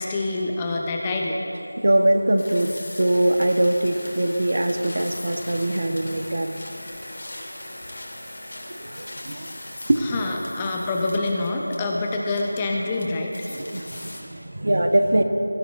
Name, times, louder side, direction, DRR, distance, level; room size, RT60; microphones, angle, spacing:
voice 1, 0.0-1.4 10.1-13.5, left 2 dB, 15° left, 0 dB, 0.7 m, -26 dB
voice 2, 1.8-6.6 8.6-9.6 9.9-10.3 13.5-15.2, right 1 dB, 55° right, 6 dB, 1.1 m, -22 dB
sound 1, 2.4-14.2, left 1 dB, 55° left, 3.1 m, -39 dB
19.0 x 14.5 x 2.6 m, 2.8 s
figure-of-eight pair, 175°, 0 cm